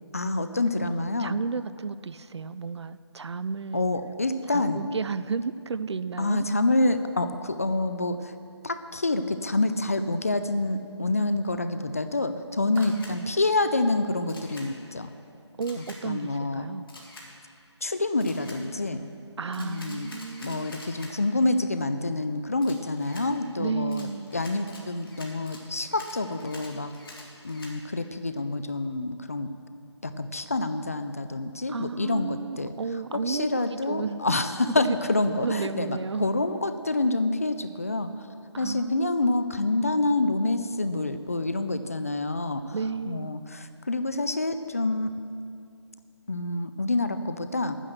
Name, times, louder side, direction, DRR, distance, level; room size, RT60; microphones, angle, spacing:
voice 1, 0.1-1.4 3.7-4.8 6.2-8.3 8.6-15.1 15.8-16.6 17.8-19.1 19.6-20.1 20.4-26.9 27.4-29.5 30.0-32.7 33.3-38.3 38.6-42.8 43.1-45.1 46.3-47.8, left 2 dB, 30° left, 10 dB, 0.4 m, -27 dB
voice 2, 0.7-3.8 4.5-6.5 12.8-13.4 15.6-16.9 19.4-20.7 23.6-24.3 31.7-34.2 34.6-35.0 35.4-36.3 38.5-39.4 42.7-43.3, right 5 dB, 65° right, 15 dB, 0.4 m, -33 dB
Camera, 12.7-13.1 14.3-14.7 15.6-16.0 16.9-17.3 18.2-18.6 19.5-21.1 22.6-23.3 23.9-27.7, left 2 dB, 50° left, 2.1 m, -46 dB
10.5 x 9.8 x 6.5 m, 2.5 s
figure-of-eight pair, 165°, 15 cm